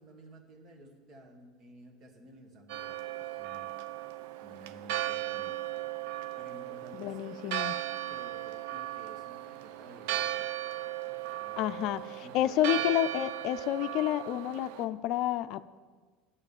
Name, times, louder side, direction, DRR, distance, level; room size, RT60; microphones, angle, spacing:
voice 1, 0.0-3.7 4.4-7.4 8.1-10.3 11.4-12.9, right 1 dB, 45° right, 3 dB, 2.2 m, -53 dB
Church bell, 2.7-14.9, right 14 dB, 70° right, 0.6 m, -37 dB
voice 2, 6.9-7.7 11.6-15.6, left 13 dB, 60° left, 13 dB, 0.4 m, -30 dB
10.5 x 8.3 x 7.2 m, 1.5 s
supercardioid pair, 100°, 0 cm